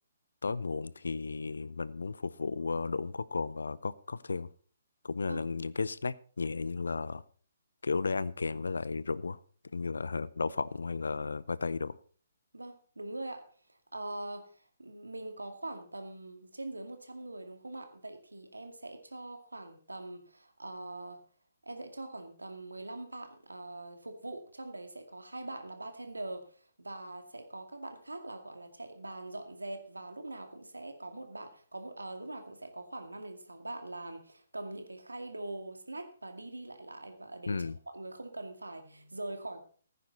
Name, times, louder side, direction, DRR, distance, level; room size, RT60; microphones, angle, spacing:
voice 1, 0.4-4.5 5.0-7.2 7.8-9.4 9.7-12.0 37.5-37.8, left 4 dB, 70° left, 0.6 m, -34 dB
voice 2, 12.5-21.2 21.6-39.6, right 2 dB, 80° right, 2.2 m, -43 dB
15.5 x 9.5 x 4.1 m
figure-of-eight pair, 130°, 0 cm